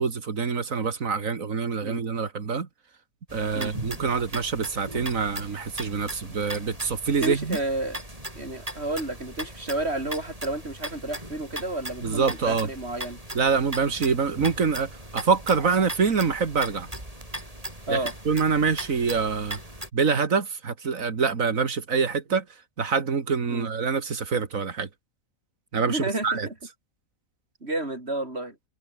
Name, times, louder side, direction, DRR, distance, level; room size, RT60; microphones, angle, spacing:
voice 1, 0.0-2.7 3.3-7.6 12.0-12.7 13.3-16.9 17.9-18.0 18.3-19.6 19.9-22.4 22.8-24.9 25.7-26.5, right 5 dB, 85° right, 2.4 m, -25 dB
sound 1, 3.3-19.9, right 1 dB, 25° right, 7.9 m, -38 dB
voice 2, 7.2-8.0 8.4-13.2 17.9-18.1 23.5-23.7 25.9-26.5 27.6-28.6, right 2 dB, 50° right, 5.1 m, -31 dB
omnidirectional pair, 1.4 m